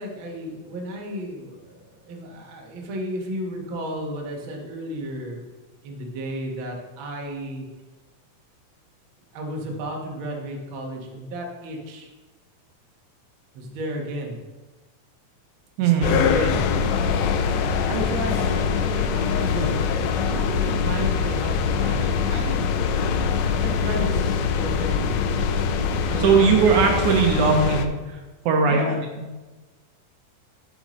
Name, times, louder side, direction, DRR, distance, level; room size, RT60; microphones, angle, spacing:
voice 1, 0.0-5.4 5.8-7.7 9.3-12.1 13.5-14.4 15.8-16.6 17.8-20.0 20.3-22.8 23.6-24.3 24.5-25.4 26.1-26.5 28.7-29.0, equal, 55° right, 0 dB, 1.6 m, -32 dB
voice 2, 15.8-16.1 26.2-28.2 28.5-28.9, right 5 dB, 75° right, 3 dB, 2.1 m, -19 dB
sound 1, 16.0-27.9, left 6 dB, 85° left, 1.5 m, -23 dB
8.1 x 7.9 x 3.1 m, 1.2 s
omnidirectional pair, 3.7 m